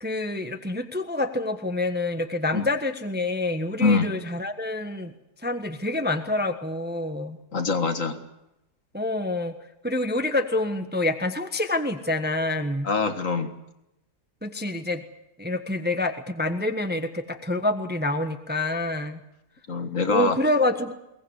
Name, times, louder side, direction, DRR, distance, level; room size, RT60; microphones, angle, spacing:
voice 1, 0.0-5.1 5.4-7.4 8.9-9.6 9.8-12.9 14.4-15.0 15.4-19.2 20.1-20.9, left 2 dB, 5° right, 7 dB, 1.2 m, -27 dB
voice 2, 7.5-8.2 12.8-13.5 19.7-20.4, left 4 dB, 50° left, 8 dB, 2.0 m, -24 dB
22.5 x 19.0 x 8.2 m, 0.88 s
omnidirectional pair, 1.8 m